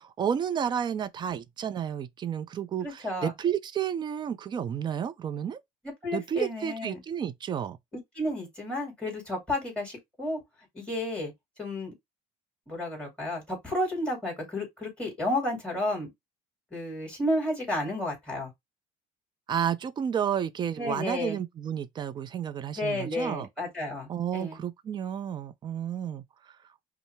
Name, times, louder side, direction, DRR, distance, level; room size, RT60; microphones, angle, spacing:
voice 1, 0.0-5.6 6.1-7.8 19.5-23.5 24.1-26.5, right 8 dB, 30° right, 0.4 m, -31 dB
voice 2, 2.8-3.3 5.8-7.0 8.1-10.4 10.7-11.3 11.6-11.9 12.7-16.1 16.7-18.5 20.8-21.4 22.8-24.6, left 1 dB, 5° left, 2.5 m, -32 dB
5.3 x 2.0 x 3.3 m
cardioid pair, 140°, 15 cm